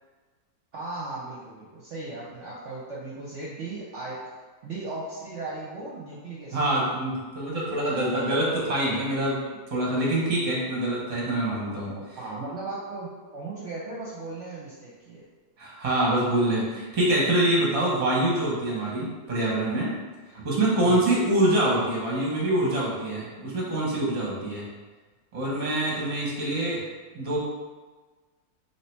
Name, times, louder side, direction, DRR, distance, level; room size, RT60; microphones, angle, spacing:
voice 1, 0.7-4.2 4.6-6.6 12.2-15.2 20.8-21.0 21.7-21.9, right 3 dB, 60° right, -6 dB, 0.9 m, -36 dB
voice 2, 6.5-9.4 9.7-11.9 15.6-20.0 20.3-24.6 25.3-26.8 27.1-27.4, right 1 dB, 25° right, -4 dB, 0.9 m, -25 dB
3.2 x 2.9 x 4.4 m, 1.3 s
omnidirectional pair, 1.7 m